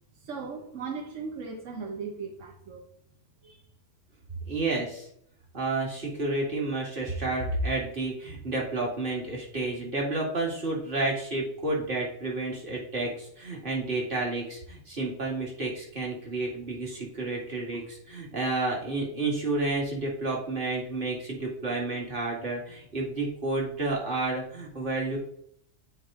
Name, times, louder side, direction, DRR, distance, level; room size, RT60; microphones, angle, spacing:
voice 1, 0.2-2.8 3.4-3.6, right 5 dB, 85° right, 2 dB, 1.4 m, -37 dB
voice 2, 4.5-5.1 5.5-25.2, right 2 dB, 45° right, -2 dB, 2.1 m, -30 dB
8.0 x 4.5 x 3.7 m, 0.69 s
omnidirectional pair, 1.3 m